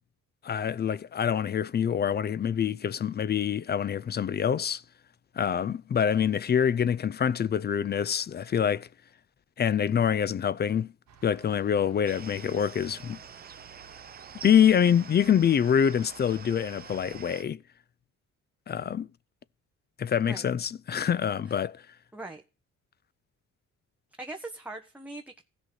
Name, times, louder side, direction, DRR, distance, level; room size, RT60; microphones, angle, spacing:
voice 1, 0.4-4.8 5.4-8.9 9.6-10.9 11.2-13.2 14.4-17.6 18.7-19.1 20.0-21.8, left 8 dB, 35° left, 0.4 m, -25 dB
sound 1, 11.1-17.2, right 7 dB, 60° right, 1.4 m, -55 dB
sound 2, 12.0-17.4, right 7 dB, 30° right, 0.6 m, -46 dB
voice 2, 22.1-22.4 24.2-25.4, right 2 dB, 5° right, 1.2 m, -41 dB
16.0 x 6.2 x 4.0 m
cardioid pair, 90°, 30 cm